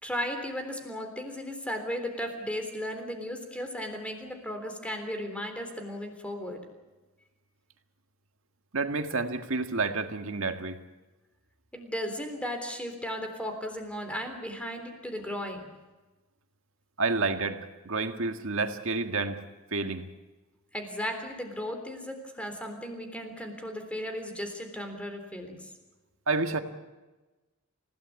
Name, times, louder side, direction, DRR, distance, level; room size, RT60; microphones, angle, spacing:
voice 1, 0.0-6.6 11.7-15.7 20.7-25.6, equal, 5° left, 5 dB, 3.6 m, -35 dB
voice 2, 8.7-10.8 17.0-19.4 19.7-20.0 26.3-26.6, right 3 dB, 65° right, 6 dB, 1.8 m, -29 dB
29.0 x 17.0 x 8.3 m, 1.2 s
head